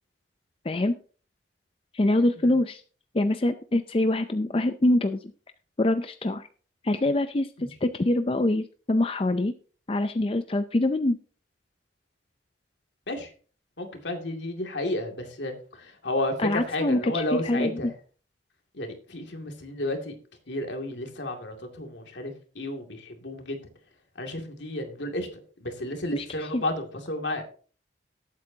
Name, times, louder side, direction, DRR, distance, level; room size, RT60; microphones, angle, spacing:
voice 1, 0.6-0.9 1.9-2.8 3.1-5.3 5.8-6.5 6.8-7.5 7.8-9.5 9.9-11.2 16.4-17.8 26.1-26.6, left 1 dB, 30° left, 9 dB, 0.5 m, -24 dB
voice 2, 13.8-17.9 18.7-20.2 20.5-23.6 24.2-25.3 25.6-27.4, left 1 dB, 75° left, 4 dB, 2.4 m, -32 dB
18.5 x 8.3 x 2.8 m, 0.40 s
head